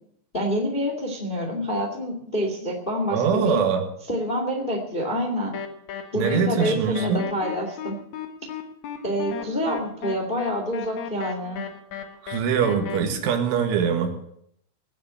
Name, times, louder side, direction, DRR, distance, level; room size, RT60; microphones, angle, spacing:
voice 1, 0.3-3.6 4.1-5.6 6.1-8.0 9.0-11.6, equal, 25° left, 2 dB, 1.0 m, -27 dB
voice 2, 3.1-3.9 6.2-7.3 12.2-14.2, right 7 dB, 85° right, 5 dB, 4.2 m, -23 dB
sound 1, 5.5-13.0, left 8 dB, 75° left, 1.6 m, -35 dB
18.0 x 7.4 x 8.7 m, 0.71 s
omnidirectional pair, 5.4 m